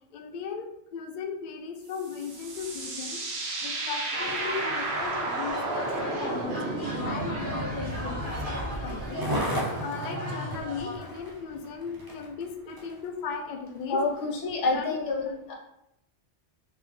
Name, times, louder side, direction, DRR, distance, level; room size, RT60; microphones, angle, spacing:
voice 1, 0.1-3.2 3.6-9.3 9.8-14.0 14.7-14.9, left 6 dB, 60° left, 4 dB, 0.5 m, -37 dB
sound 1, 1.9-9.1, right 2 dB, 70° right, 1.0 m, -33 dB
sound 2, 4.1-10.9, equal, 50° right, 1.1 m, -37 dB
Skateboard, 4.2-13.1 13.7-13.8, equal, 25° right, 0.5 m, -37 dB
voice 2, 13.9-15.5, left 3 dB, 90° left, 0 dB, 1.2 m, -28 dB
3.6 x 2.9 x 3.2 m, 0.80 s
omnidirectional pair, 1.2 m